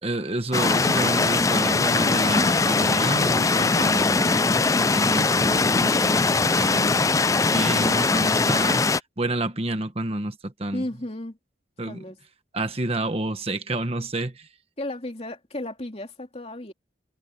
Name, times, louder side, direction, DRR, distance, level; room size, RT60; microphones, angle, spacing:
voice 1, 0.0-4.4 4.7-6.9 7.5-8.8 9.2-10.8 11.8-12.0 12.5-14.5, right 1 dB, 30° right, 1.3 m, -29 dB
sound 1, 0.5-9.0, left 3 dB, 20° left, 0.4 m, -21 dB
voice 2, 10.7-11.4 11.9-12.2 14.8-16.7, left 1 dB, 35° left, 3.1 m, -34 dB
head